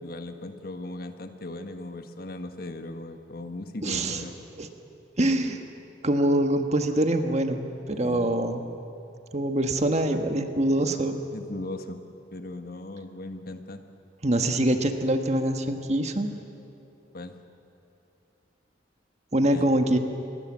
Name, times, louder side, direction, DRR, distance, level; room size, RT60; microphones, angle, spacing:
voice 1, 0.0-4.3 7.9-8.3 10.8-12.0 12.3-13.8 17.1-17.4 19.5-19.7, left 2 dB, 55° left, 7 dB, 1.4 m, -38 dB
voice 2, 3.8-4.2 4.6-4.7 5.2-5.6 6.0-8.6 9.3-11.2 14.2-16.3 19.3-20.0, right 1 dB, 35° right, 6 dB, 1.5 m, -24 dB
25.5 x 21.0 x 7.5 m, 2.7 s
head